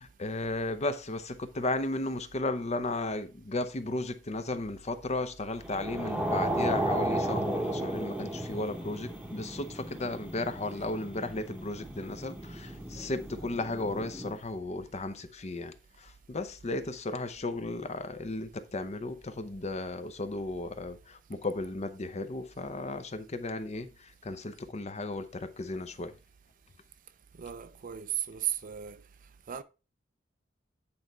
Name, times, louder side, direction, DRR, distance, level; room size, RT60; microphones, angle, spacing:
voice 1, 0.0-26.1, left 2 dB, 35° left, 0.7 m, -35 dB
sound 1, 5.6-14.4, right 1 dB, 5° right, 1.0 m, -34 dB
voice 2, 27.4-29.0 29.5-29.6, right 10 dB, 45° right, 0.5 m, -35 dB
8.7 x 4.0 x 4.4 m
head